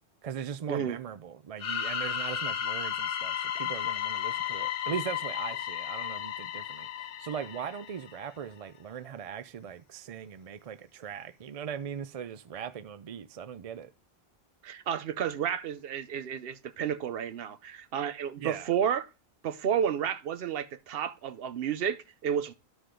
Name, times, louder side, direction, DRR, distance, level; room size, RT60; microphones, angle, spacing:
voice 1, 0.2-13.9 18.4-18.7, right 8 dB, 50° right, 0.4 m, -39 dB
sound 1, 1.6-8.2, left 10 dB, 65° left, 0.8 m, -34 dB
voice 2, 14.6-19.1 19.4-22.5, right 8 dB, 70° right, 0.9 m, -31 dB
13.0 x 5.0 x 3.8 m
omnidirectional pair, 1.1 m